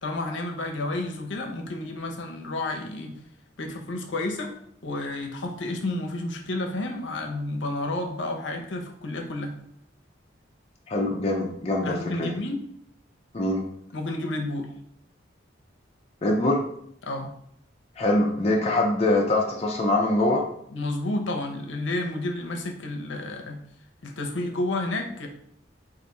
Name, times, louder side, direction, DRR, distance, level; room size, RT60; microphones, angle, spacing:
voice 1, 0.0-3.1 3.6-4.5 4.8-9.5 11.8-12.6 13.9-14.7 17.0-17.3 20.7-23.6 24.0-25.3, left 2 dB, 70° left, 3 dB, 0.7 m, -31 dB
voice 2, 10.9-12.4 13.3-13.6 16.2-16.6 18.0-20.4, left 1 dB, 30° left, -1 dB, 0.5 m, -23 dB
4.8 x 2.6 x 4.1 m, 0.70 s
head